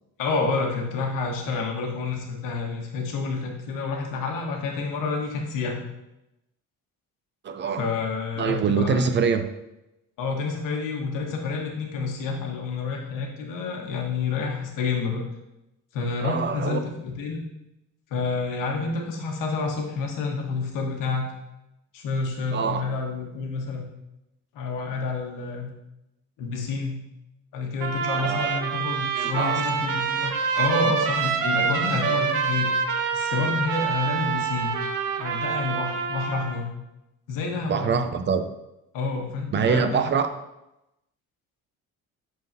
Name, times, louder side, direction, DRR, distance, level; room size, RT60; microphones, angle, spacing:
voice 1, 0.2-5.8 7.8-9.1 10.2-15.2 15.9-17.4 18.1-21.3 21.9-23.9 24.5-25.7 26.4-27.0 27.5-32.7 33.1-34.7 35.2-36.7 37.3-38.0 38.9-40.1, left 4 dB, 85° left, 1 dB, 1.2 m, -29 dB
voice 2, 7.4-7.9 8.4-9.5 16.2-16.8 22.5-22.8 28.1-28.6 29.1-29.6 37.7-38.5 39.5-40.3, right 6 dB, 35° right, 9 dB, 0.4 m, -24 dB
Trumpet, 27.8-36.6, right 6 dB, 75° right, 0.8 m, -26 dB
9.1 x 4.0 x 2.7 m, 0.91 s
cardioid pair, 125°, 31 cm